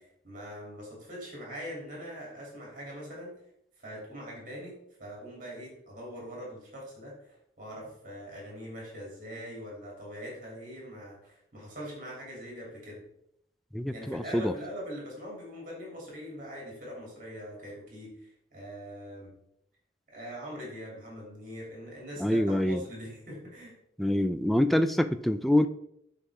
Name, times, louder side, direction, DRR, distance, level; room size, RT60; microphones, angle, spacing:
voice 1, 0.2-3.4 3.8-13.0 13.9-19.3 20.1-23.7, equal, 45° right, -3 dB, 2.9 m, -42 dB
voice 2, 13.7-14.5 22.2-22.8 24.0-25.7, left 1 dB, ahead, 9 dB, 0.3 m, -25 dB
11.5 x 4.2 x 3.5 m, 0.74 s
head